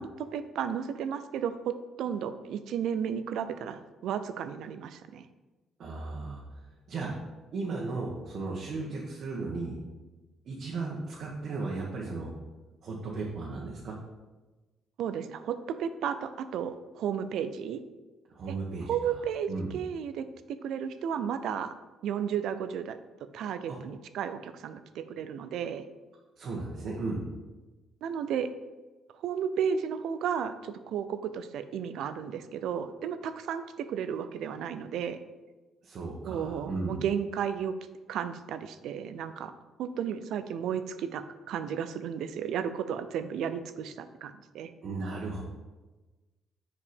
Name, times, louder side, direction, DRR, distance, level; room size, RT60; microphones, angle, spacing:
voice 1, 0.0-5.3 15.0-17.8 18.5-18.6 18.9-21.7 22.0-23.0 23.3-25.9 28.0-28.5 29.2-35.2 36.2-37.7 38.1-39.5 39.8-44.7, right 8 dB, 80° right, 11 dB, 0.5 m, -33 dB
voice 2, 5.8-6.4 6.9-7.1 7.5-9.8 10.4-12.3 12.8-14.0 18.3-19.1 19.5-19.7 23.7-23.8 26.4-27.2 35.8-36.9 44.8-45.4, right 3 dB, 60° right, -4 dB, 1.4 m, -35 dB
6.9 x 5.0 x 5.2 m, 1.2 s
cardioid pair, 95°, 0 cm